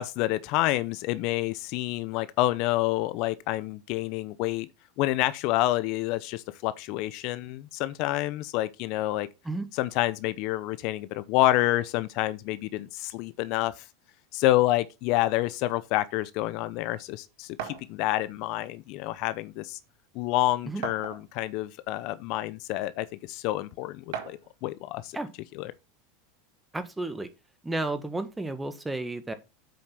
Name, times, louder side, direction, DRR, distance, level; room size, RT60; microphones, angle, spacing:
voice 1, 0.0-4.7 5.0-9.3 9.7-13.8 14.3-19.8 20.1-25.2 25.5-25.7, left 16 dB, 60° left, 0.7 m, -28 dB
sound 1, 17.6-17.9 19.0-19.1 19.5-19.6 20.8-21.5 22.3-22.4 24.1-24.5, right 8 dB, 70° right, 1.7 m, -37 dB
voice 2, 26.7-27.3 27.6-29.3, right 2 dB, 10° right, 1.6 m, -32 dB
7.8 x 5.3 x 5.8 m
hypercardioid pair, 100°, 0 cm